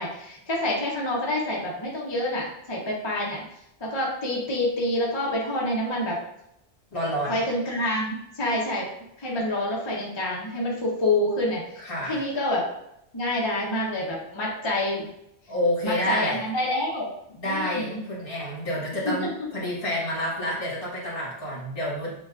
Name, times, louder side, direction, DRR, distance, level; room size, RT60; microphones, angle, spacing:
voice 1, 0.0-3.4 3.8-6.2 7.3-8.9 9.2-12.6 13.1-15.1 15.8-17.1 17.4-18.0 19.0-19.3, left 1 dB, 30° left, -3 dB, 0.6 m, -27 dB
voice 2, 6.9-7.4 11.8-12.2 15.5-16.4 17.4-19.3 19.5-22.1, equal, 55° left, -5 dB, 1.7 m, -28 dB
6.9 x 2.3 x 2.3 m, 0.81 s
omnidirectional pair, 1.2 m